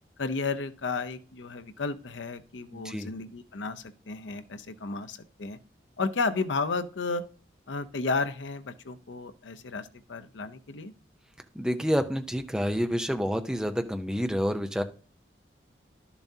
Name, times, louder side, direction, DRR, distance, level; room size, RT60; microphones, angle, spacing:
voice 1, 0.2-5.6 6.0-7.2 7.7-10.9, left 4 dB, 80° left, 10 dB, 0.6 m, -33 dB
voice 2, 2.7-3.1 11.5-14.8, equal, 5° right, 7 dB, 0.6 m, -28 dB
11.5 x 7.0 x 2.8 m, 0.41 s
head